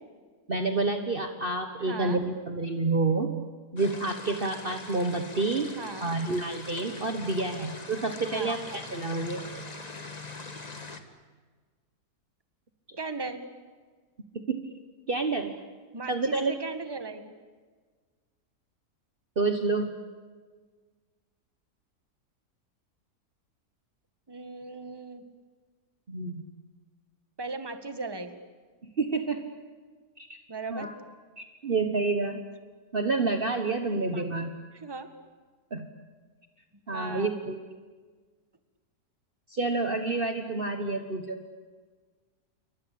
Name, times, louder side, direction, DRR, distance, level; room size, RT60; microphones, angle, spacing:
voice 1, 0.5-3.3 3.7-5.7 6.0-9.4 12.9-13.0 14.5-14.6 15.1-15.5 16.1-16.5 19.3-20.0 26.1-26.4 28.8-29.4 30.2-30.4 30.7-30.9 31.4-32.4 32.9-34.6 35.7-35.9 36.9-37.6 39.5-41.4, right 3 dB, 35° right, 6 dB, 1.5 m, -29 dB
voice 2, 1.8-2.2 5.8-6.1 8.3-8.6 13.0-13.4 15.9-17.3 24.3-25.2 27.4-28.4 30.5-30.9 33.9-34.3 34.7-35.1 36.9-37.4, right 3 dB, 15° right, 9 dB, 1.8 m, -38 dB
sound 1, 3.8-11.0, left 2 dB, 25° left, 1.7 m, -42 dB
28.5 x 23.5 x 8.6 m, 1.5 s
omnidirectional pair, 1.7 m